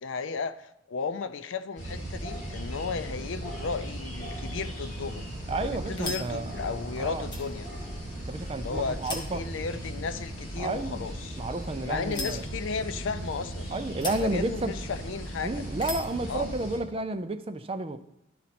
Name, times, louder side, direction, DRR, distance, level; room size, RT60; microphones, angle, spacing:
voice 1, 0.0-5.2 5.6-7.7 8.6-11.4 11.8-13.7 14.0-15.6 16.3-16.5, left 5 dB, 75° left, 0.5 m, -34 dB
sound 1, 1.8-16.8, right 1 dB, 40° left, 3.4 m, -37 dB
sound 2, 4.9-16.2, left 2 dB, 25° left, 1.3 m, -44 dB
voice 2, 5.5-6.5 7.0-7.2 8.1-9.4 10.6-11.1 11.4-12.4 13.7-14.7 15.4-18.0, right 2 dB, 30° right, 0.5 m, -31 dB
12.0 x 4.3 x 4.2 m
head